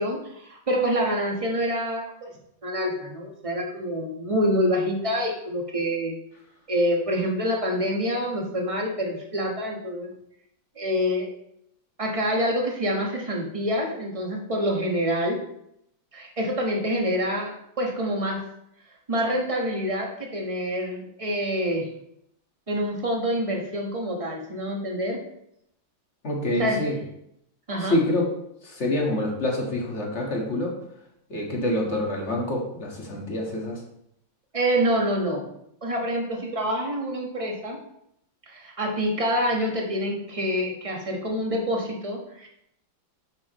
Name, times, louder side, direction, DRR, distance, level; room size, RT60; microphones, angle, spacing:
voice 1, 0.0-2.3 2.6-6.1 6.7-10.1 10.8-11.3 12.0-15.4 16.1-18.4 19.1-21.9 22.7-25.2 26.6-26.9 27.7-28.0 34.5-35.5 35.8-37.8 38.5-42.5, equal, 20° right, 0 dB, 1.2 m, -26 dB
voice 2, 26.2-27.0 27.8-28.3 28.6-30.8 31.3-33.8, left 1 dB, 35° left, -1 dB, 1.8 m, -26 dB
10.5 x 6.1 x 3.1 m, 0.77 s
omnidirectional pair, 2.1 m